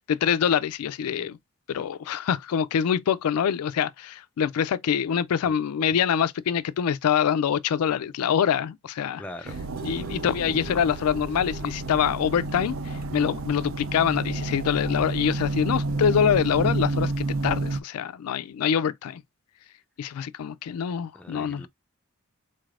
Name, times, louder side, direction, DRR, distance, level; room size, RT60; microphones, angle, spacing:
voice 1, 0.0-1.4 1.7-9.2 9.8-19.2 20.0-21.6, left 8 dB, 90° left, 0.3 m, -25 dB
voice 2, 9.2-9.6 21.1-21.7, left 1 dB, 5° left, 0.4 m, -40 dB
sound 1, 9.2-12.1 12.5-12.6 13.0-13.2 14.3-14.4, right 1 dB, 40° right, 0.8 m, -46 dB
sound 2, 9.5-17.8, right 2 dB, 65° right, 0.4 m, -30 dB
4.0 x 3.2 x 2.4 m
head